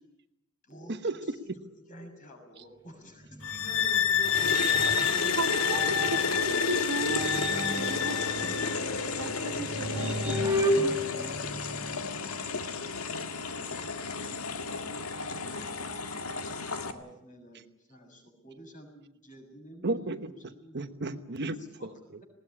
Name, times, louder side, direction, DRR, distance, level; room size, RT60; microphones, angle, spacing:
voice 1, 0.9-1.4 2.6-2.7 7.7-7.9 17.5-17.6 19.8-22.2, right 2 dB, 50° right, 9 dB, 1.1 m, -35 dB
voice 2, 1.6-6.6 8.3-8.7 13.4-15.7 16.9-20.7, right 1 dB, 35° left, 3 dB, 6.7 m, -49 dB
sound 1, 3.3-6.4 7.0-12.1, equal, 10° right, 3.6 m, -33 dB
sound 2, 3.4-8.8, left 9 dB, 65° left, 1.2 m, -29 dB
sound 3, 4.2-16.9, left 4 dB, 85° left, 1.8 m, -33 dB
voice 3, 5.4-7.4 7.7-8.7 9.2-11.4, right 2 dB, 85° right, 8 dB, 1.5 m, -37 dB
20.0 x 18.5 x 9.9 m, 0.83 s
head